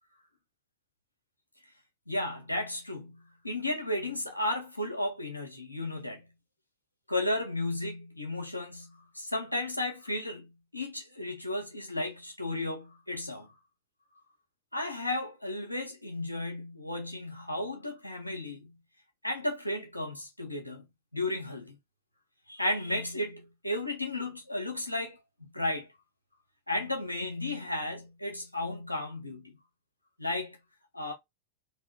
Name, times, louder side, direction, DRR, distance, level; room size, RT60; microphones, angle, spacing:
voice 1, 2.1-6.3 7.1-13.5 14.7-18.8 19.2-20.8 21.1-21.8 22.5-25.9 26.7-29.6 30.2-30.6 30.9-31.1, left 1 dB, 85° left, 1.4 m, -34 dB
3.5 x 3.4 x 4.1 m
figure-of-eight pair, 90°, 0 cm